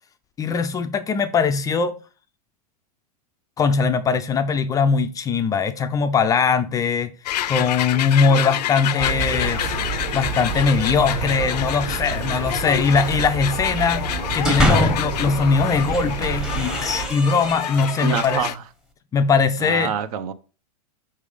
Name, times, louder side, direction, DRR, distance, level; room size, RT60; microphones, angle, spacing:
voice 1, 0.4-1.9 3.6-7.1 7.5-9.6 10.1-18.4 19.1-19.9, left 5 dB, 15° left, 0.3 m, -21 dB
sound 1, 7.3-18.6, left 12 dB, 80° left, 0.4 m, -28 dB
sound 2, 9.0-17.1, right 5 dB, 30° right, 1.2 m, -29 dB
sound 3, 14.2-15.2 15.7-18.5, left 1 dB, 5° right, 0.8 m, -25 dB
voice 2, 18.0-18.6 19.6-20.3, right 8 dB, 60° right, 0.7 m, -26 dB
5.6 x 3.4 x 5.0 m
hypercardioid pair, 125°, 21 cm